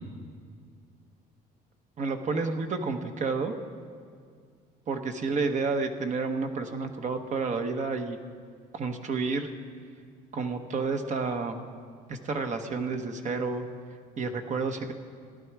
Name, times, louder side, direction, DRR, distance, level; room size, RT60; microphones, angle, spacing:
voice 1, 2.0-3.5 4.9-8.2 8.7-9.5 10.3-11.6 12.1-13.7 14.2-14.9, right 4 dB, 45° right, 6 dB, 1.1 m, -30 dB
16.0 x 11.5 x 4.7 m, 2.1 s
cardioid pair, 110°, 17 cm